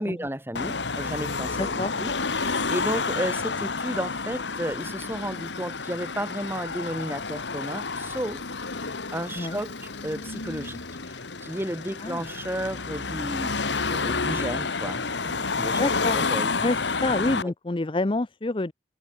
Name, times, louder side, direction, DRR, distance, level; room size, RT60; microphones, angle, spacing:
voice 1, 0.0-8.4 8.8-13.6 13.9-16.5 17.4-17.5, right 1 dB, 15° right, 5.5 m, -33 dB
Car passing by / Traffic noise roadway noise / Engine, 0.6-17.4, left 4 dB, 80° left, 1.8 m, -30 dB
voice 2, 1.6-2.0 9.3-9.6 12.0-12.2 15.8-16.3 16.6-18.7, left 2 dB, 30° left, 0.7 m, -28 dB
head